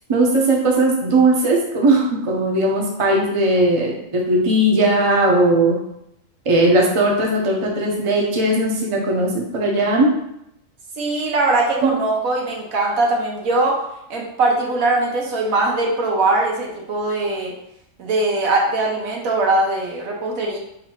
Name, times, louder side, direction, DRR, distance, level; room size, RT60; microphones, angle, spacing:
voice 1, 0.1-5.7 6.4-10.1 11.8-11.9, right 1 dB, 30° right, -1 dB, 0.7 m, -18 dB
voice 2, 11.0-13.8 14.1-17.5 18.0-20.6, right 2 dB, 85° right, -1 dB, 1.4 m, -21 dB
3.9 x 2.7 x 4.4 m, 0.80 s
omnidirectional pair, 1.4 m